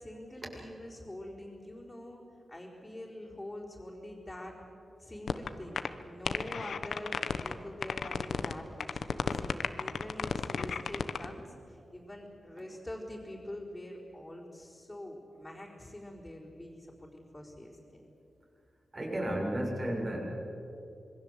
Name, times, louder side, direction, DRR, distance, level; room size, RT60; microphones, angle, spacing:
voice 1, 0.0-4.6 5.0-18.0, left 1 dB, 15° left, -7 dB, 4.4 m, -45 dB
sound 1, 5.3-5.5 5.8-5.9 6.2-7.5 7.8-8.5 8.8-11.2, left 6 dB, 70° left, 1.1 m, -32 dB
voice 2, 18.9-20.2, right 1 dB, 30° right, -1 dB, 6.8 m, -32 dB
26.5 x 22.5 x 8.1 m, 2.7 s
wide cardioid pair, 135°, 0 cm